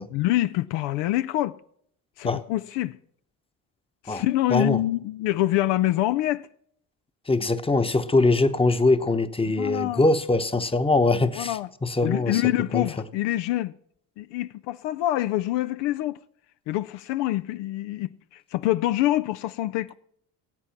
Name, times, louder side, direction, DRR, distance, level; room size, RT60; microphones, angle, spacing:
voice 1, 0.1-1.6 2.2-3.0 4.0-6.5 9.4-10.0 11.4-11.7 12.0-13.7 14.2-16.2 16.7-19.9, left 15 dB, 70° left, 0.6 m, -26 dB
voice 2, 4.5-4.8 7.3-12.4 12.7-12.8, left 2 dB, 10° left, 1.0 m, -22 dB
16.5 x 8.4 x 5.8 m
hypercardioid pair, 60°, 44 cm